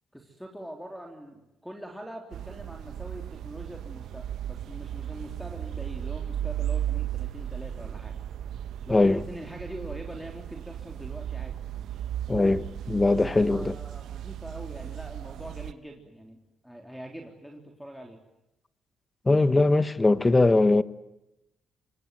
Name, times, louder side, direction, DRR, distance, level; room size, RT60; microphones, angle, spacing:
voice 1, 0.1-8.1 8.9-11.6 13.1-16.4 16.6-18.2, equal, ahead, 3.7 m, -43 dB
sound 1, 2.3-15.7, right 11 dB, 75° right, 1.2 m, -35 dB
voice 2, 8.9-9.2 12.3-13.7 19.3-20.8, left 2 dB, 20° left, 1.3 m, -21 dB
26.0 x 24.0 x 9.3 m
cardioid pair, 90°, 0 cm